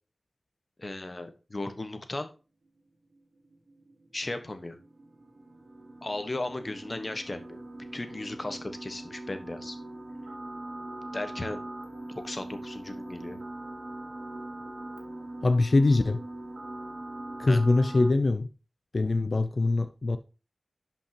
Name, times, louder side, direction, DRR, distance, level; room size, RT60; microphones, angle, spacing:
voice 1, 0.8-2.3 4.1-4.8 6.0-7.6 7.9-9.8 11.1-11.6 12.1-13.4 17.5-17.6, left 2 dB, 40° left, 1.3 m, -36 dB
sound 1, 3.1-18.1, right 1 dB, 75° right, 2.4 m, -42 dB
voice 2, 15.4-16.2 17.4-18.5 18.9-20.2, left 2 dB, 65° left, 0.5 m, -23 dB
11.5 x 5.3 x 2.9 m
wide cardioid pair, 55°, 0 cm